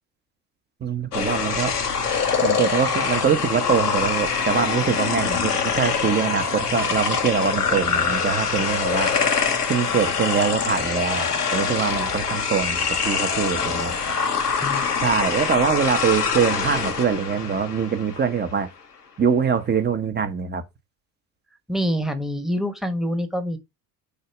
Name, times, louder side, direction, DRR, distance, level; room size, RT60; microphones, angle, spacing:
voice 1, 0.8-1.8 2.4-9.1 9.7-14.0 15.0-18.7 19.2-20.6, right 7 dB, 20° right, 1.1 m, -23 dB
sound 1, 1.1-18.4, left 6 dB, 85° left, 1.1 m, -24 dB
voice 2, 21.7-23.6, equal, ahead, 1.2 m, -26 dB
6.6 x 2.8 x 5.7 m
figure-of-eight pair, 65°, 45 cm